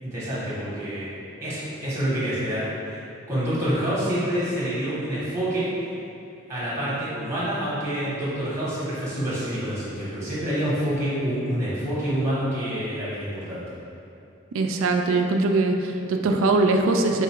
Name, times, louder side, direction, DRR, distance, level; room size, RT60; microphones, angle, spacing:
voice 1, 0.0-1.1 1.4-5.7 6.5-13.6, right 1 dB, 15° right, -9 dB, 1.1 m, -27 dB
voice 2, 14.5-17.2, right 3 dB, 75° right, 4 dB, 0.4 m, -21 dB
4.0 x 2.4 x 4.4 m, 2.7 s
head